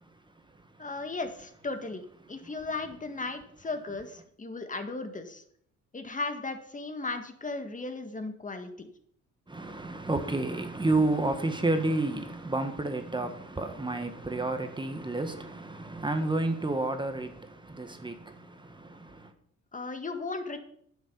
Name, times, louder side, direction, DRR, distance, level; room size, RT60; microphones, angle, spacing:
voice 1, 0.8-5.4 5.9-8.9 19.7-20.6, left 3 dB, 25° left, 1.8 m, -36 dB
voice 2, 9.5-19.3, right 2 dB, 15° right, 1.6 m, -30 dB
10.0 x 7.3 x 7.0 m
cardioid pair, 90°, 30 cm